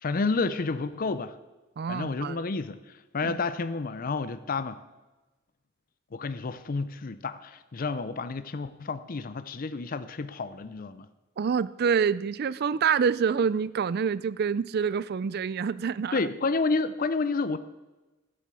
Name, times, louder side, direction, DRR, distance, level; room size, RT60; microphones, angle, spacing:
voice 1, 0.0-1.4 1.9-4.8 6.1-11.1 16.1-17.6, left 3 dB, 40° left, 0.5 m, -30 dB
voice 2, 1.8-2.4 3.2-3.3 11.4-16.2, right 6 dB, 50° right, 0.3 m, -27 dB
12.0 x 7.8 x 6.8 m
head